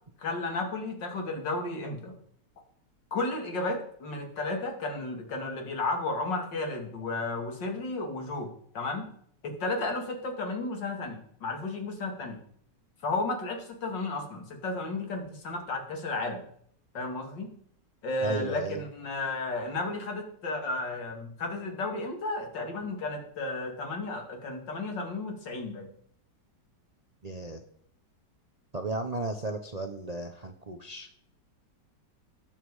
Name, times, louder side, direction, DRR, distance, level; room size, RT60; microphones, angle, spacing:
voice 1, 0.2-2.2 3.1-8.5 8.7-9.1 9.4-12.4 13.0-16.4 16.9-17.5 18.0-25.9, left 2 dB, 85° left, 2 dB, 2.9 m, -33 dB
voice 2, 18.2-18.8 27.2-27.6 28.7-31.1, right 3 dB, 35° right, 5 dB, 0.7 m, -34 dB
18.0 x 7.5 x 4.9 m, 0.66 s
omnidirectional pair, 1.9 m